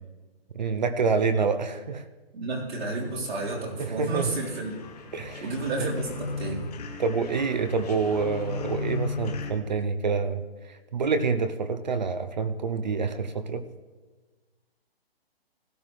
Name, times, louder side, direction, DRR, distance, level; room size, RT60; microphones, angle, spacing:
voice 1, 0.5-2.0 3.8-4.3 5.1-5.5 5.8-5.9 7.0-10.4 10.9-13.6, right 5 dB, 45° right, 11 dB, 0.6 m, -27 dB
voice 2, 2.3-4.8 5.4-6.7, right 3 dB, 75° right, -4 dB, 4.1 m, -31 dB
sound 1, 2.7-9.5, left 5 dB, 40° left, 1.2 m, -37 dB
16.5 x 12.5 x 3.2 m, 1.3 s
hypercardioid pair, 170°, 31 cm